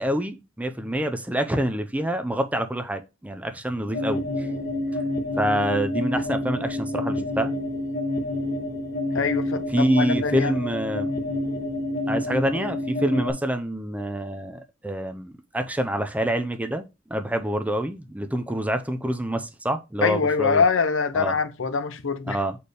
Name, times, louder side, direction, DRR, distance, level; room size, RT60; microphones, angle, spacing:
voice 1, 0.0-4.5 4.9-5.0 5.4-7.5 9.7-11.1 12.1-20.6 21.1-21.3 22.3-22.6, right 1 dB, 5° right, 0.5 m, -26 dB
sound 1, 3.9-13.3, left 1 dB, 50° left, 1.1 m, -28 dB
voice 2, 9.1-10.5 20.0-22.4, left 5 dB, 70° left, 0.7 m, -24 dB
6.7 x 4.3 x 3.3 m
head